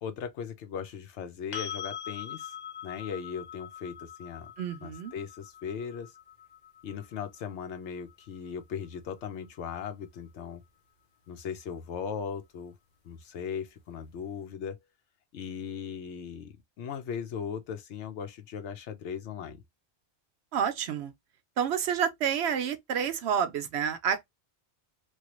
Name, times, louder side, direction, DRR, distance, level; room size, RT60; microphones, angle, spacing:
voice 1, 0.0-2.6 2.8-4.5 4.8-6.1 6.8-10.6 11.3-12.7 13.0-14.8 15.3-19.6, left 7 dB, 85° left, 1.0 m, -38 dB
sound 1, 1.5-9.3 12.2-12.3, left 9 dB, 50° left, 0.6 m, -43 dB
voice 2, 4.6-5.1 20.5-21.1 21.6-24.2, right 8 dB, 75° right, 0.8 m, -29 dB
3.1 x 2.3 x 2.9 m
omnidirectional pair, 1.1 m